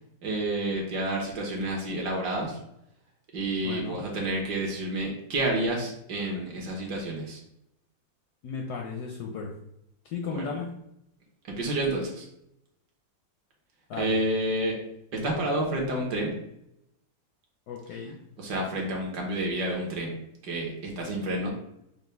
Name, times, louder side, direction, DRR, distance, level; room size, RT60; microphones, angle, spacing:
voice 1, 0.2-2.6 3.3-7.4 10.2-10.5 11.5-12.2 14.0-14.8 15.1-16.3 18.4-20.2 20.4-21.5, right 1 dB, 65° right, 0 dB, 1.4 m, -29 dB
voice 2, 3.6-4.0 8.4-9.5 10.1-10.7 13.9-14.2 17.7-18.2, left 5 dB, 75° left, 1 dB, 0.9 m, -35 dB
5.4 x 2.1 x 3.3 m, 0.81 s
omnidirectional pair, 2.1 m